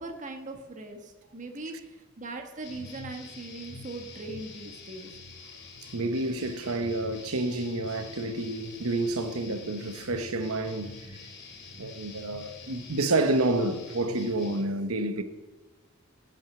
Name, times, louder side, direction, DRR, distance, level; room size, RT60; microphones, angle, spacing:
voice 1, 0.0-5.1, right 2 dB, 35° right, 1.3 m, -40 dB
sound 1, 2.6-14.7, left 3 dB, 55° left, 2.6 m, -46 dB
voice 2, 5.9-11.2 11.8-15.2, right 2 dB, 85° right, 1.0 m, -29 dB
15.5 x 6.3 x 7.7 m
head